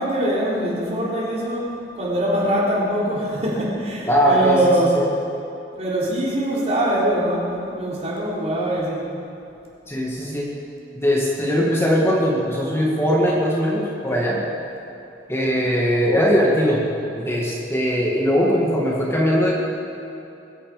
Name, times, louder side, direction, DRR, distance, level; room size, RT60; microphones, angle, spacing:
voice 1, 0.0-5.2 5.7-9.2, right 1 dB, 40° right, -5 dB, 3.6 m, -23 dB
voice 2, 4.0-4.6 4.9-5.1 9.9-10.5 10.9-14.4 15.3-16.8 17.1-19.5, equal, 15° left, -4 dB, 2.1 m, -20 dB
22.0 x 11.0 x 5.0 m, 2.8 s
head